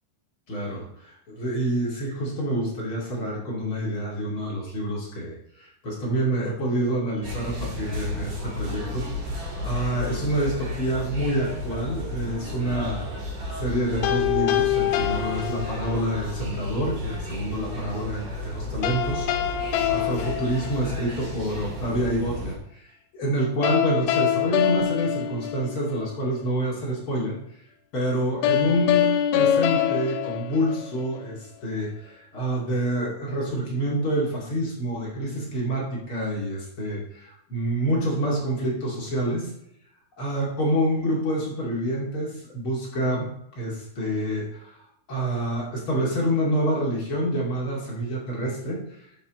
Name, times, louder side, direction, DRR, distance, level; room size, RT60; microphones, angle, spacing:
voice 1, 0.5-13.0 13.5-27.4 27.9-39.5 40.2-43.3 43.5-44.8 45.1-49.1, right 1 dB, 40° left, -4 dB, 1.9 m, -27 dB
sound 1, 7.2-22.6, left 2 dB, 40° right, 3.8 m, -33 dB
sound 2, 14.0-16.2 18.8-21.3 23.6-26.2 28.4-31.3, left 11 dB, 80° left, 2.8 m, -25 dB
12.5 x 6.0 x 4.1 m, 0.76 s
omnidirectional pair, 5.9 m